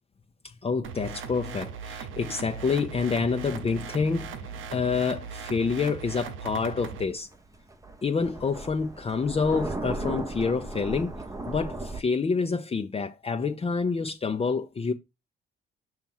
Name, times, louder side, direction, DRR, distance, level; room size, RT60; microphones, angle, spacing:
voice 1, 0.4-7.3 8.0-11.1 11.5-14.9, left 5 dB, 30° left, 0.7 m, -28 dB
sound 1, 0.8-7.0, right 6 dB, 80° right, 0.8 m, -39 dB
Thunder, 7.0-12.0, right 2 dB, 15° right, 0.9 m, -36 dB
5.9 x 3.0 x 5.5 m
cardioid pair, 90°, 20 cm